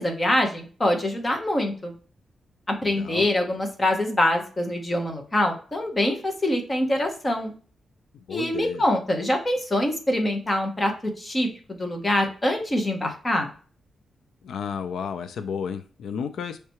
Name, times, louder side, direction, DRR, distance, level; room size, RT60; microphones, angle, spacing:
voice 1, 0.0-1.9 2.7-7.5 8.3-13.5, left 1 dB, 20° left, 3 dB, 0.8 m, -24 dB
voice 2, 2.8-3.3 8.3-8.8 14.4-16.6, left 6 dB, 75° left, 10 dB, 0.3 m, -32 dB
5.7 x 3.3 x 2.9 m, 0.40 s
wide cardioid pair, 175°, 0 cm